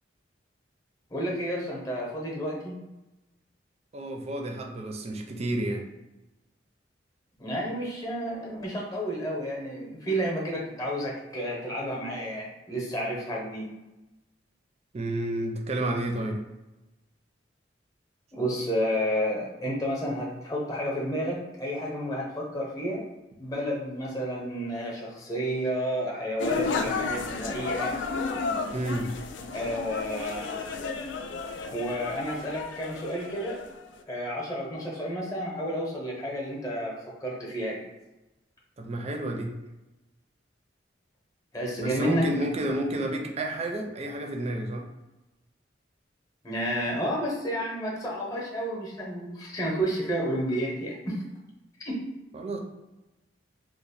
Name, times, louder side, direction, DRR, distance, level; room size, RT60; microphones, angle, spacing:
voice 1, 1.1-2.8 7.4-13.7 18.3-23.0 23.4-28.0 29.5-30.5 31.7-33.6 34.1-37.9 41.5-42.3 46.4-51.2 51.8-52.0, equal, 20° left, -3 dB, 0.7 m, -31 dB
voice 2, 3.9-5.8 14.9-16.4 28.7-29.1 38.8-39.5 41.8-44.8 52.3-52.6, right 1 dB, 35° right, 2 dB, 0.4 m, -31 dB
sound 1, 26.4-33.9, left 4 dB, 75° left, 0.3 m, -32 dB
2.9 x 2.1 x 4.1 m, 1.0 s
head